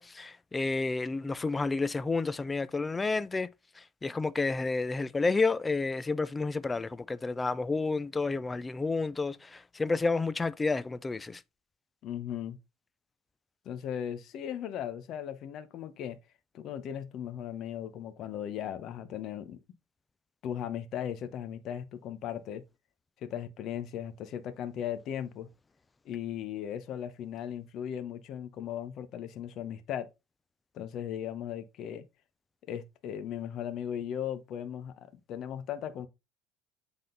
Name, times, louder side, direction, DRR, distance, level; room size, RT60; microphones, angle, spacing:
voice 1, 0.0-3.5 4.0-11.4, left 3 dB, 15° left, 0.3 m, -30 dB
voice 2, 12.0-12.6 13.6-16.2 16.5-19.6 20.4-22.6 23.2-25.5 26.0-30.1 30.7-32.0 32.7-34.9 35.3-36.1, left 9 dB, 45° left, 0.9 m, -37 dB
7.8 x 3.7 x 3.8 m
cardioid pair, 150°, 0 cm